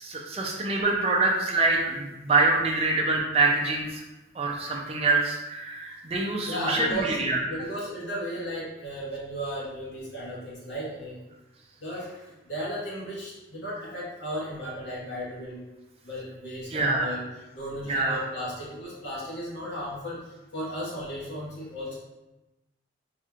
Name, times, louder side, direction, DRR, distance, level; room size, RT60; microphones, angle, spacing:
voice 1, 0.0-4.0 4.3-7.4 16.7-17.1 17.9-18.2, right 3 dB, 30° right, -1 dB, 0.5 m, -25 dB
voice 2, 6.4-7.2 7.5-11.2 11.8-15.6 16.0-17.3 17.5-22.0, equal, 75° left, -7 dB, 1.3 m, -35 dB
4.1 x 3.0 x 2.4 m, 1.0 s
head